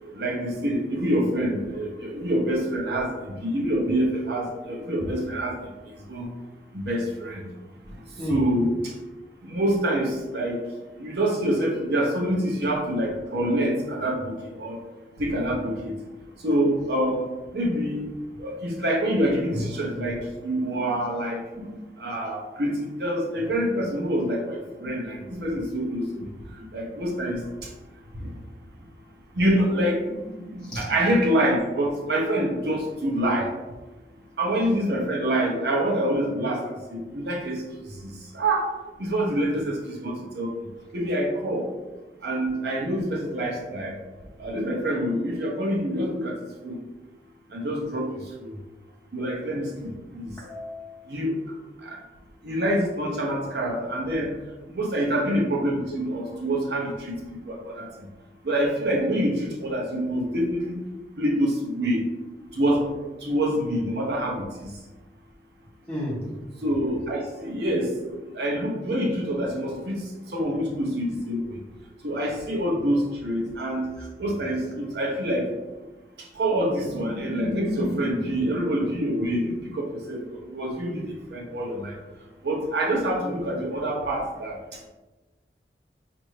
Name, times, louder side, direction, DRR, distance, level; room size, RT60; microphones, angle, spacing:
voice 1, 0.0-3.1 3.4-5.6 6.1-6.3 6.7-7.5 8.3-8.7 9.5-10.6 11.0-14.8 15.2-15.9 16.4-17.3 17.5-18.0 18.4-26.1 26.7-27.4 29.4-30.2 30.5-33.5 34.4-37.6 38.0-38.7 39.0-40.5 40.9-41.6 42.2-44.0 44.4-46.4 46.6-46.7 47.5-48.1 49.1-50.3 51.1-51.4 51.8-52.0 52.4-54.3 54.7-57.2 57.5-57.9 58.4-60.8 61.2-62.0 62.5-62.9 63.2-64.4 66.6-67.9 68.3-70.0 70.3-71.4 72.0-73.9 74.2-75.5 76.3-82.0 82.4-84.6, right 1 dB, 70° right, -2 dB, 0.7 m, -26 dB
voice 2, 8.2-8.5 12.3-12.6 30.6-30.9 50.4-51.1 65.9-66.2, left 1 dB, 5° left, -8 dB, 1.2 m, -33 dB
5.3 x 2.5 x 3.2 m, 1.1 s
head